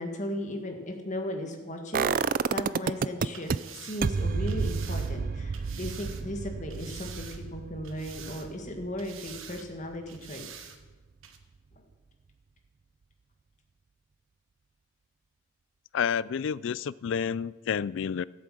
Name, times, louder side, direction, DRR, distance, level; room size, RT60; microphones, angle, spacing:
voice 1, 0.0-2.1 2.5-10.5, left 1 dB, 35° left, 4 dB, 1.7 m, -36 dB
sound 1, 1.9-3.6 4.0-9.8 10.2-10.3, right 5 dB, 40° right, 0.3 m, -30 dB
sound 2, 3.3-6.2 6.7-7.6 7.8-8.7 9.0-9.7 10.1-10.8 11.2-11.4, right 8 dB, 70° right, 1.2 m, -47 dB
voice 2, 15.9-18.2, left 7 dB, 60° left, 20 dB, 0.3 m, -29 dB
14.0 x 8.3 x 7.7 m, 1.3 s
head